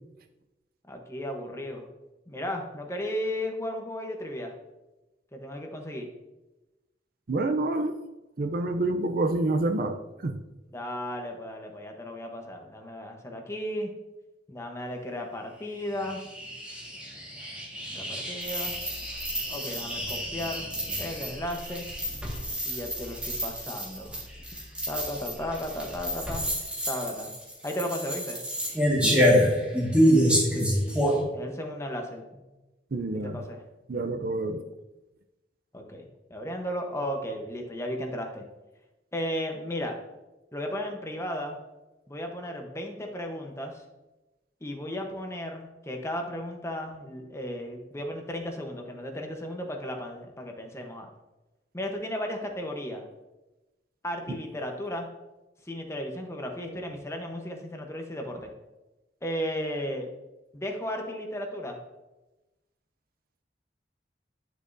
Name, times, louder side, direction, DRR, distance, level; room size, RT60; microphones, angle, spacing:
voice 1, 0.9-1.9 2.3-4.5 5.3-6.1 10.7-13.9 14.5-16.2 17.9-18.8 19.5-20.7 21.0-21.9 22.7-24.2 24.9-26.4 26.9-27.3 27.6-28.4 31.3-32.4 33.2-33.6 35.7-38.4 39.1-40.0 40.5-41.6 42.1-43.7 44.6-51.1 51.7-53.0 54.0-55.1 55.7-58.5 59.2-60.1 60.5-61.8, equal, 15° left, 2 dB, 1.0 m, -35 dB
voice 2, 7.3-8.0 8.4-10.4 29.0-29.5 32.9-33.4 33.9-34.6, right 2 dB, 55° right, 7 dB, 0.5 m, -28 dB
sound 1, 15.8-31.2, equal, 5° right, 1.8 m, -27 dB
10.0 x 6.3 x 2.7 m, 1.0 s
head